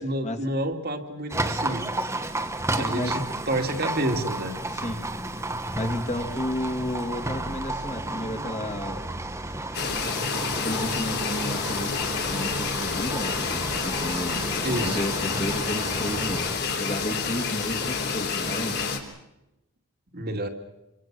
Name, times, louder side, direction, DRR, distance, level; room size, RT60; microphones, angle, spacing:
voice 1, 0.0-2.1 2.7-4.5 10.1-10.2 14.6-15.0 20.1-20.5, right 1 dB, 45° right, 4 dB, 2.4 m, -29 dB
Livestock farm animals working animals, 1.3-16.6, right 2 dB, 10° right, 1.3 m, -32 dB
voice 2, 2.7-3.1 4.7-5.0 5.8-9.0 10.6-16.5 16.8-18.8, left 1 dB, 30° left, 5 dB, 2.6 m, -32 dB
sound 1, 9.7-19.0, left 5 dB, 50° left, 3.6 m, -29 dB
28.0 x 24.5 x 6.2 m, 0.92 s
head